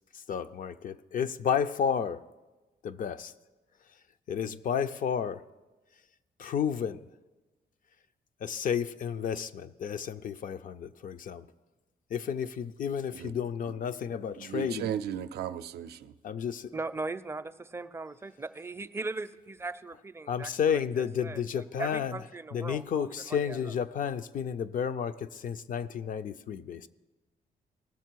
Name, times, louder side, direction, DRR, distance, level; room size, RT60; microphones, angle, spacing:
voice 1, 0.1-2.2 2.8-3.3 4.3-5.4 6.4-7.0 8.4-11.5 12.1-14.9 16.2-16.7 20.3-22.2 22.5-26.9, left 7 dB, 55° left, 0.4 m, -32 dB
voice 2, 14.4-16.1, right 9 dB, 90° right, 0.4 m, -36 dB
voice 3, 16.7-23.6, right 3 dB, 15° right, 0.4 m, -39 dB
18.5 x 6.7 x 4.6 m
cardioid pair, 110°, 16 cm